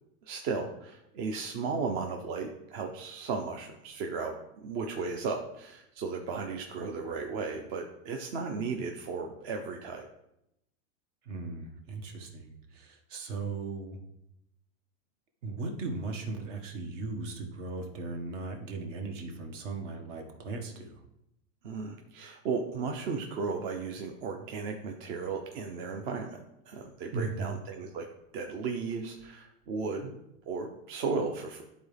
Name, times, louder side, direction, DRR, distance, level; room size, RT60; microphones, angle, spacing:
voice 1, 0.3-4.3 4.6-10.1 21.6-26.4 26.7-28.1 28.3-30.2 30.5-31.6, right 4 dB, 50° right, 3 dB, 0.9 m, -35 dB
voice 2, 11.2-14.0 15.4-21.0 27.1-27.6, right 3 dB, 65° right, 4 dB, 1.7 m, -37 dB
12.0 x 4.1 x 3.4 m, 0.83 s
supercardioid pair, 145°, 40 cm